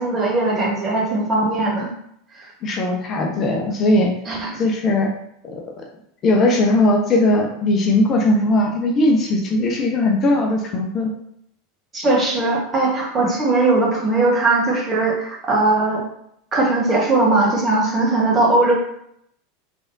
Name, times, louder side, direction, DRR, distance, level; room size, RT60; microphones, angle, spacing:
voice 1, 0.0-1.9 2.4-2.5 4.3-4.6 11.9-16.0 16.5-18.7, right 2 dB, 30° right, -2 dB, 1.2 m, -19 dB
voice 2, 2.6-4.1 4.6-5.1 5.4-5.6 6.2-11.1 18.0-18.1, left 2 dB, 35° left, 1 dB, 0.7 m, -18 dB
3.4 x 3.4 x 2.6 m, 0.73 s
figure-of-eight pair, 80°, 0 cm